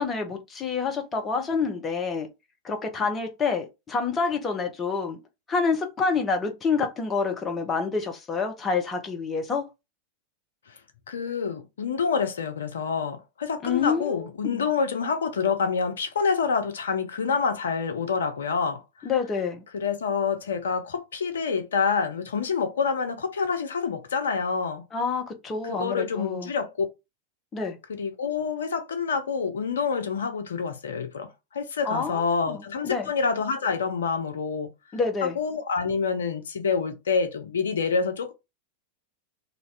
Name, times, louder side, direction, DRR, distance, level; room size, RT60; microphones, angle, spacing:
voice 1, 0.0-2.3 2.6-5.2 5.5-9.7 13.6-14.6 19.0-19.6 24.9-26.5 27.5-27.8 31.8-33.1 34.9-35.4, left 5 dB, 20° left, 0.8 m, -28 dB
voice 2, 11.1-19.1 19.7-24.9 25.6-26.9 27.9-34.7 35.2-38.3, left 5 dB, 65° left, 0.6 m, -27 dB
2.6 x 2.4 x 3.2 m
figure-of-eight pair, 90°, 0 cm